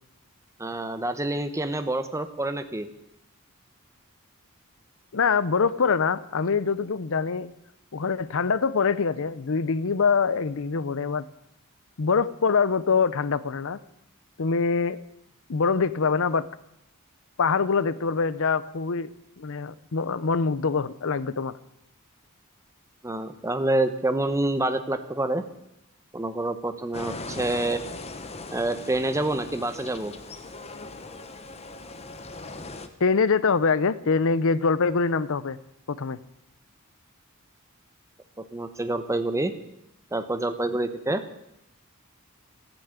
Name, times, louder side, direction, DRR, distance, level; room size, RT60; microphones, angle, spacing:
voice 1, 0.6-2.9 23.0-25.4 26.1-27.8 28.5-30.1 38.4-39.5 40.1-41.2, right 2 dB, 15° right, 9 dB, 0.9 m, -27 dB
voice 2, 5.1-7.5 7.9-11.3 12.0-13.8 14.4-15.0 15.5-16.5 17.4-19.1 19.4-21.5 33.0-35.6 35.9-36.2, left 5 dB, 65° left, 16 dB, 0.7 m, -24 dB
sound 1, 26.9-32.9, left 3 dB, 30° left, 1.0 m, -39 dB
13.5 x 10.0 x 8.2 m, 0.81 s
head